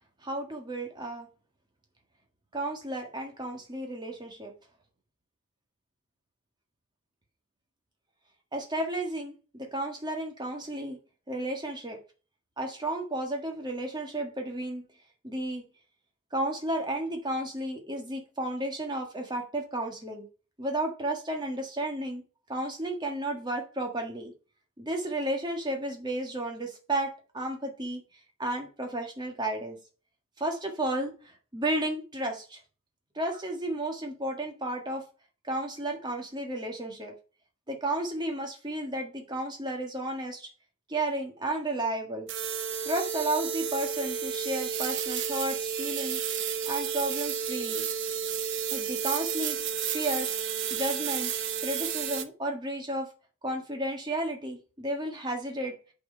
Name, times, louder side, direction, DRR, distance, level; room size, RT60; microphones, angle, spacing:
voice 1, 0.2-1.3 2.5-4.5 8.5-11.0 11.3-12.0 12.6-14.8 15.2-15.7 16.3-20.3 20.6-22.2 22.5-24.3 24.8-28.0 28.4-29.8 30.4-32.6 33.1-35.0 35.5-37.1 37.7-40.5 40.9-42.3 42.8-46.2 46.6-47.9 48.7-49.6 49.9-50.4 50.7-51.3 51.6-53.1 53.4-55.8, right 1 dB, 20° right, 1.6 m, -33 dB
sound 1, 42.3-52.2, right 7 dB, 55° right, 0.8 m, -31 dB
8.4 x 4.6 x 5.5 m
head